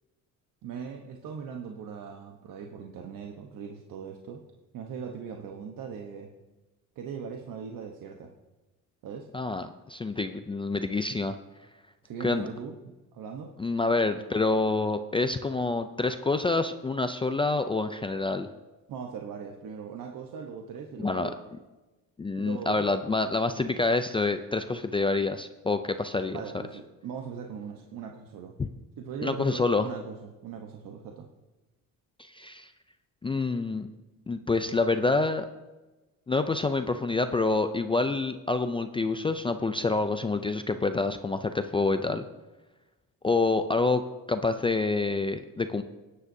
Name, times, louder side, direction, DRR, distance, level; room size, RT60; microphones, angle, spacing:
voice 1, 0.6-4.4 4.7-6.3 7.0-8.3 9.0-9.3 12.0-13.5 18.9-21.4 22.4-22.9 26.3-28.6 29.0-31.3, right 6 dB, 70° right, 2 dB, 1.0 m, -40 dB
voice 2, 9.3-11.4 12.2-12.5 13.6-18.5 21.0-21.3 22.2-26.4 28.6-28.7 29.2-29.9 32.2-32.7 33.2-33.9 34.3-35.5 36.3-42.2 43.2-44.0 44.3-45.8, left 3 dB, 15° left, 8 dB, 0.3 m, -27 dB
17.5 x 9.7 x 2.7 m, 1.1 s
cardioid pair, 135°, 35 cm